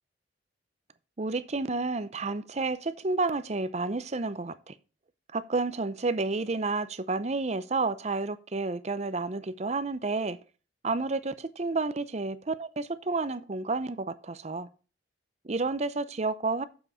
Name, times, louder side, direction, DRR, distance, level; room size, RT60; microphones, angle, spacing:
voice 1, 1.2-4.7 5.3-10.4 10.8-14.7 15.4-16.6, right 3 dB, 35° right, 0.6 m, -30 dB
7.0 x 6.1 x 6.7 m
head